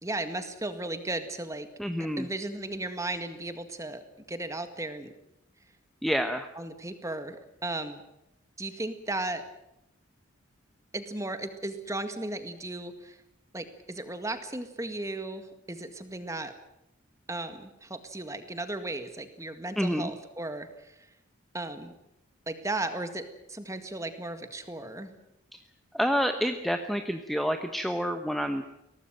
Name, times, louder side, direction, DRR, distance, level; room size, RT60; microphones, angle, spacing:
voice 1, 0.0-1.7 2.2-4.0 4.3-5.1 6.6-8.0 8.6-9.4 10.9-13.2 13.5-16.5 17.3-21.0 21.5-21.9 22.5-25.1, right 2 dB, 15° right, 9 dB, 1.9 m, -35 dB
voice 2, 1.8-2.3 6.0-6.5 19.8-20.1 25.5-25.6 25.9-28.6, equal, ahead, 7 dB, 1.0 m, -28 dB
22.5 x 18.0 x 9.0 m, 0.85 s
head